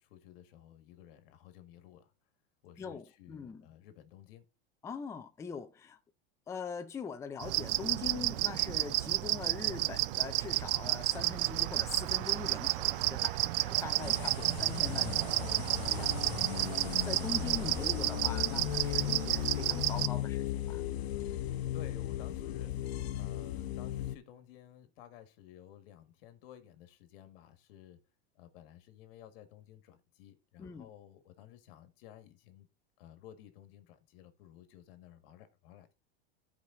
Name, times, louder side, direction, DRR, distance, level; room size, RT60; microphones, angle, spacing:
voice 1, 0.0-2.1 2.6-4.5 14.4-14.6 17.3-17.5 20.9-22.7 23.1-28.0 28.4-32.7 33.0-35.9, left 11 dB, 65° left, 1.7 m, -55 dB
voice 2, 2.8-3.7 4.8-6.0 6.5-20.8 30.6-30.9, left 5 dB, 10° left, 0.5 m, -43 dB
sound 1, 7.4-20.1, right 19 dB, 60° right, 0.5 m, -31 dB
sound 2, 14.0-24.2, left 13 dB, 80° left, 0.9 m, -36 dB
14.0 x 4.9 x 3.8 m
supercardioid pair, 155°, 31 cm